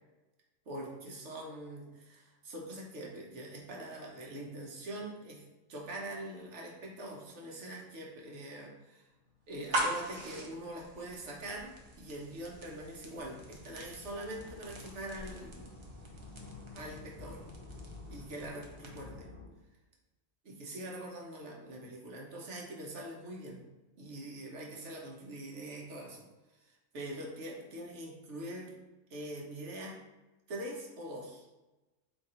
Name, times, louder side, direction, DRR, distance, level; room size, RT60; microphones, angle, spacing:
voice 1, 0.7-5.4 5.7-9.1 9.5-11.7 12.0-15.8 16.7-17.4 18.1-19.3 20.4-23.6 24.0-26.3 26.6-28.8 29.1-29.9 30.5-31.5, right 1 dB, 60° right, -1 dB, 1.1 m, -43 dB
sound 1, 9.2-9.3 10.0-19.4, left 3 dB, 20° right, 1.3 m, -52 dB
sound 2, 9.5-19.2, right 1 dB, 40° right, 0.4 m, -42 dB
3.7 x 2.8 x 4.2 m, 1.1 s
omnidirectional pair, 1.4 m